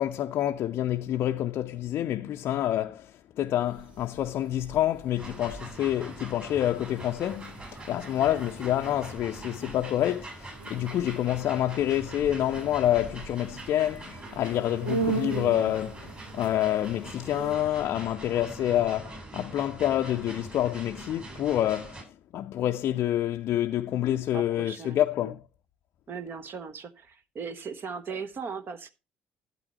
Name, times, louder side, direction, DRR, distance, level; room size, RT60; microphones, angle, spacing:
voice 1, 0.0-16.0 16.3-25.4, left 12 dB, 55° left, 0.5 m, -28 dB
sound 1, 3.7-17.6, right 4 dB, 80° right, 1.4 m, -40 dB
sound 2, 5.2-22.0, right 2 dB, 30° right, 7.5 m, -43 dB
voice 2, 14.9-15.4 24.3-25.3 26.1-28.9, right 5 dB, 45° right, 1.1 m, -39 dB
12.0 x 8.8 x 3.0 m
figure-of-eight pair, 50°, 5 cm